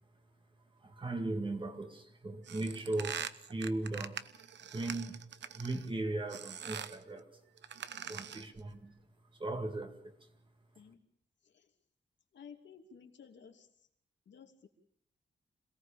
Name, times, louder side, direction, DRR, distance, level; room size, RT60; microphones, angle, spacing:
voice 1, 0.8-4.2 4.7-5.2 5.5-7.4 8.1-8.9 9.4-10.2, right 2 dB, 25° right, 2.1 m, -38 dB
sound 1, 2.4-5.9 6.3-7.0 7.6-8.6, right 8 dB, 75° right, 1.0 m, -43 dB
voice 2, 12.3-13.7 14.3-14.7, left 6 dB, 80° left, 2.8 m, -55 dB
27.5 x 18.0 x 7.2 m
wide cardioid pair, 170°, 19 cm